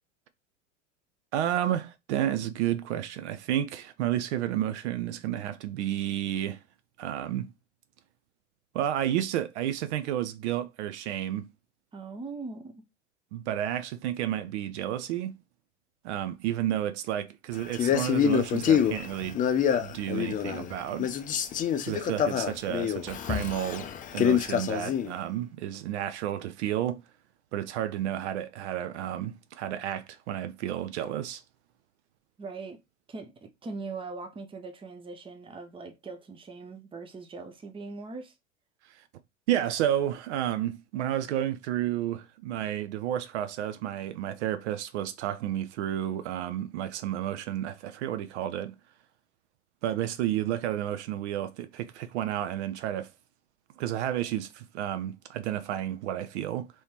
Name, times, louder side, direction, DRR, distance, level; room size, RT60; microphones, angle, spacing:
voice 1, 1.3-6.6 7.0-7.5 8.7-11.5 13.3-15.4 16.0-19.4 19.8-21.1 21.9-27.0 27.5-31.4 38.8-39.1 39.5-48.8 49.8-53.1 53.8-56.7, right 11 dB, 65° right, 0.6 m, -31 dB
voice 2, 11.9-12.8 32.4-32.8 33.1-38.3, right 4 dB, 15° right, 0.7 m, -41 dB
Male speech man speaking, 17.7-20.7 21.0-25.1, left 8 dB, 20° left, 0.4 m, -26 dB
3.2 x 3.1 x 2.9 m
hypercardioid pair, 85°, 37 cm